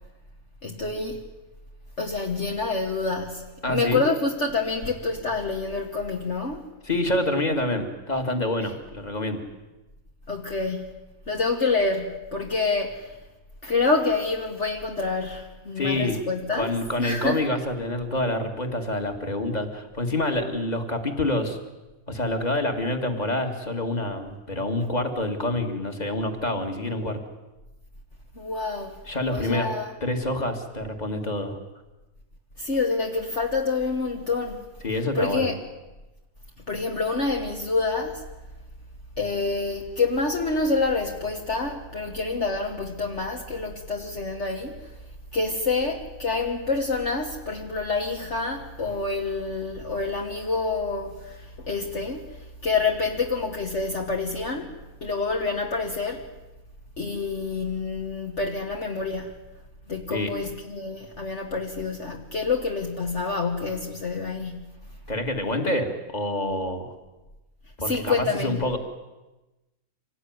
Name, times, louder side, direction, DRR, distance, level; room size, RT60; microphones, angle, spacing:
voice 1, 0.6-1.2 2.0-6.6 10.3-10.9 11.3-13.1 13.6-16.7 17.0-17.4 28.4-29.0 29.3-29.9 32.6-34.7 35.1-35.5 36.7-38.2 39.2-44.8 45.3-52.2 52.6-54.7 55.0-56.2 57.0-59.3 59.9-64.6 67.8-68.6, left 3 dB, 50° left, 1 dB, 1.9 m, -27 dB
voice 2, 3.6-4.0 6.8-9.4 15.8-16.2 16.5-21.6 22.1-27.2 29.0-29.7 30.0-31.6 34.8-35.5 60.1-60.3 65.1-66.9 67.8-68.8, left 1 dB, 25° left, 5 dB, 2.6 m, -27 dB
26.0 x 19.0 x 9.7 m, 1.1 s
omnidirectional pair, 1.6 m